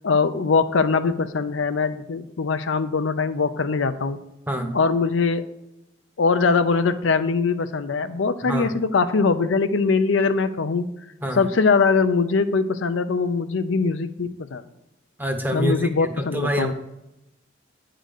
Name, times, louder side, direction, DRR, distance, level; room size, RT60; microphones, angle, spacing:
voice 1, 0.0-4.2 4.7-5.4 6.2-10.9 11.4-14.6 15.5-16.7, left 4 dB, 85° left, 10 dB, 0.5 m, -22 dB
voice 2, 4.5-4.8 8.4-8.7 11.2-11.4 15.2-16.7, equal, 10° right, 5 dB, 0.8 m, -26 dB
9.3 x 3.8 x 6.5 m, 0.87 s
head